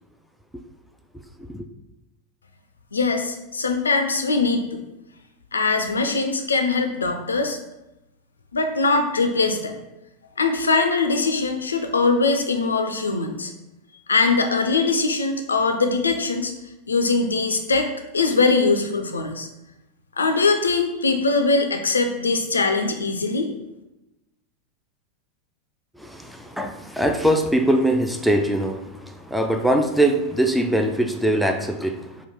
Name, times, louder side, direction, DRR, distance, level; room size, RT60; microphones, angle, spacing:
voice 1, 2.9-4.8 5.5-7.6 8.5-9.8 10.4-13.5 14.1-16.5 16.9-19.5 20.2-23.5, left 3 dB, 85° left, 6 dB, 0.3 m, -21 dB
voice 2, 25.9-32.3, right 1 dB, ahead, 5 dB, 0.3 m, -22 dB
3.0 x 2.2 x 3.4 m, 0.96 s
hypercardioid pair, 90°, 0 cm